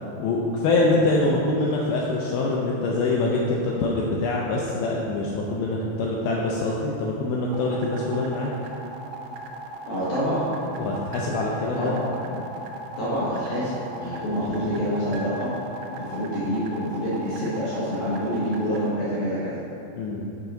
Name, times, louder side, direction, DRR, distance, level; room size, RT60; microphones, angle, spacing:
voice 1, 0.2-8.5 10.8-11.9 20.0-20.3, left 2 dB, 85° left, -3 dB, 2.2 m, -24 dB
sound 1, 7.5-18.9, right 3 dB, 85° right, 2.7 m, -37 dB
voice 2, 9.9-10.5 11.8-12.0 13.0-15.6 16.0-19.6, equal, 70° left, -9 dB, 2.0 m, -27 dB
6.2 x 5.6 x 3.8 m, 2.8 s
omnidirectional pair, 4.8 m